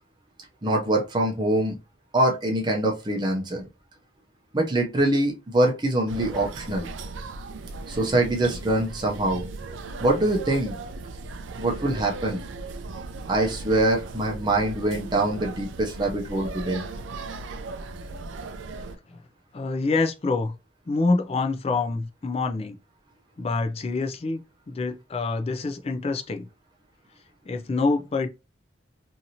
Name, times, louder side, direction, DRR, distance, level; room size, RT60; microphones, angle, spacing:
voice 1, 0.6-1.8 2.1-3.7 4.5-6.9 7.9-9.4 10.0-10.7 11.6-12.4 13.3-16.8, right 1 dB, 25° right, 0.5 m, -24 dB
sound 1, 6.1-19.0, right 3 dB, 80° right, 0.4 m, -37 dB
voice 2, 19.5-20.5 20.9-22.8 23.4-24.4 24.7-26.5 27.5-28.3, left 3 dB, 30° left, 0.3 m, -26 dB
2.8 x 2.6 x 2.7 m
head